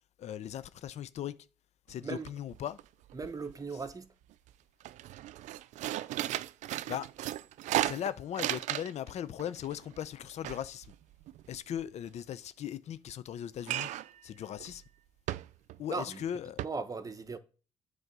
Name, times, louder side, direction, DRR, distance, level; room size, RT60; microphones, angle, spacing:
voice 1, 0.2-1.4 1.9-2.8 6.9-7.1 7.8-10.9 11.5-13.9 14.2-14.8 15.8-16.7, left 10 dB, 60° left, 0.6 m, -38 dB
sound 1, 1.9-2.0 2.3-2.8 3.1-3.9 4.3-4.5 4.8-9.1 9.4-11.8 13.6-14.2 14.6-14.8 15.3-15.8 16.2-16.3 16.6-16.7, right 14 dB, 75° right, 0.4 m, -35 dB
voice 2, 3.1-4.1 15.9-16.2 16.6-17.4, right 4 dB, 30° right, 1.0 m, -38 dB
8.1 x 3.9 x 6.1 m
cardioid pair, 95°, 12 cm